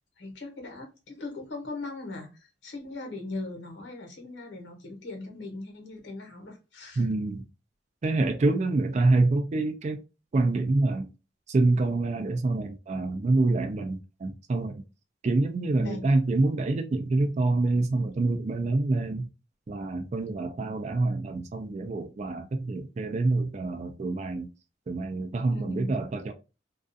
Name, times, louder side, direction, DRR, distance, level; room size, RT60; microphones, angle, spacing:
voice 1, 0.2-7.1 15.7-16.0 25.5-25.9, left 2 dB, 85° left, 1.0 m, -39 dB
voice 2, 7.0-7.4 8.0-10.0 10.3-11.1 11.5-14.8 15.2-19.3 19.7-24.5 24.9-26.3, right 2 dB, 40° right, 0.3 m, -26 dB
2.4 x 2.3 x 2.5 m
head